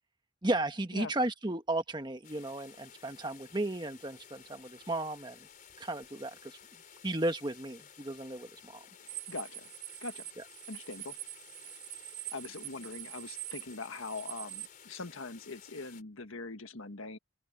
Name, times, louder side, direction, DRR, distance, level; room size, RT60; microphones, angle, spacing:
voice 1, 0.4-5.4 5.8-6.6 7.0-8.9 10.4-10.5, right 1 dB, 20° right, 1.2 m, -34 dB
sound 1, 2.2-16.0, left 8 dB, 40° left, 4.5 m, -55 dB
voice 2, 9.0-9.7 10.0-10.2 10.7-11.2 12.3-17.2, left 3 dB, 85° left, 1.7 m, -42 dB
sound 2, 9.1-14.7, right 20 dB, 65° right, 0.8 m, -44 dB
open air
head